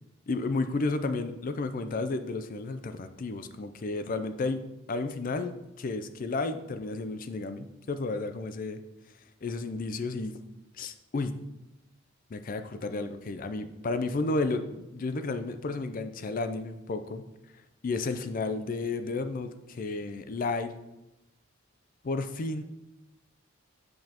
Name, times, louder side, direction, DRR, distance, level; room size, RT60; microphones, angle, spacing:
voice 1, 0.3-4.6 4.9-8.8 9.4-10.4 10.7-11.4 12.3-17.2 17.8-20.7 22.0-22.6, left 3 dB, 40° left, 9 dB, 0.4 m, -32 dB
7.9 x 5.3 x 2.9 m, 0.94 s
head